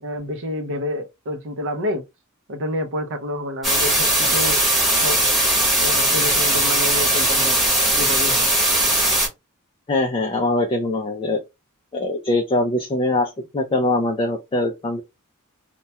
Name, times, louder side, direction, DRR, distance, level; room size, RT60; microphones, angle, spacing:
voice 1, 0.0-2.0 2.5-4.6 5.0-5.2 5.8-7.6 7.9-8.5, left 1 dB, 60° right, 0.6 m, -28 dB
sound 1, 3.6-9.3, right 1 dB, ahead, 0.9 m, -19 dB
voice 2, 9.9-11.4 11.9-15.0, left 2 dB, 25° left, 0.3 m, -22 dB
2.2 x 2.1 x 2.7 m
head